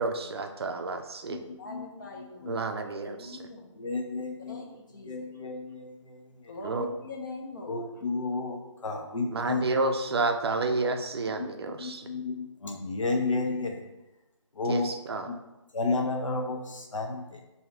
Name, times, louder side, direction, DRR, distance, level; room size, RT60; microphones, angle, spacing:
voice 1, 0.0-1.4 2.5-3.5 6.6-6.9 9.3-12.1 14.7-15.3, right 3 dB, 55° right, 6 dB, 0.4 m, -30 dB
voice 2, 1.6-3.7 4.5-5.3 6.5-8.0, left 3 dB, 40° left, 1 dB, 0.6 m, -43 dB
voice 3, 2.2-2.6 3.8-4.7 5.0-6.2 7.7-9.6 11.8-13.8 14.6-14.9 15.3-15.4 15.7-17.2, left 3 dB, 80° left, 3 dB, 0.7 m, -32 dB
3.7 x 2.7 x 3.2 m, 0.98 s
figure-of-eight pair, 160°, 16 cm